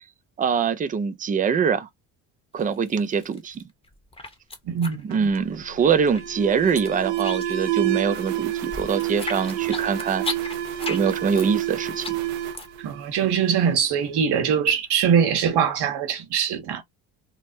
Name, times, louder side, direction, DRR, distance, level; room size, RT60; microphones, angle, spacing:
voice 1, 0.4-1.9 2.5-3.6 5.0-10.3 10.9-12.2, right 6 dB, 20° right, 0.4 m, -23 dB
sound 1, 2.6-3.6 3.9-5.7 5.9-7.8 8.1-12.9, left 2 dB, 10° left, 0.9 m, -35 dB
voice 2, 4.7-5.3 12.8-16.8, right 7 dB, 55° right, 1.1 m, -22 dB
Alarm, 5.1-13.7, right 13 dB, 75° right, 0.7 m, -29 dB
3.4 x 2.0 x 2.6 m
hypercardioid pair, 65°, 48 cm